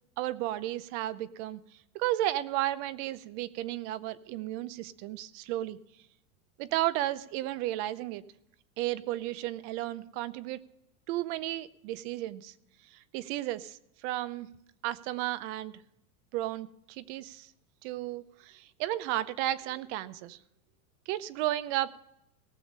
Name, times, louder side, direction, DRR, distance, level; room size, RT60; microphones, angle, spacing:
voice 1, 0.2-1.6 1.9-5.8 6.6-8.2 8.8-10.6 11.1-12.5 12.9-14.5 14.8-15.7 16.3-17.5 17.8-20.4 21.1-21.9, right 15 dB, 50° right, 16 dB, 0.7 m, -33 dB
18.5 x 7.1 x 5.4 m, 0.81 s
supercardioid pair, 120°, 44 cm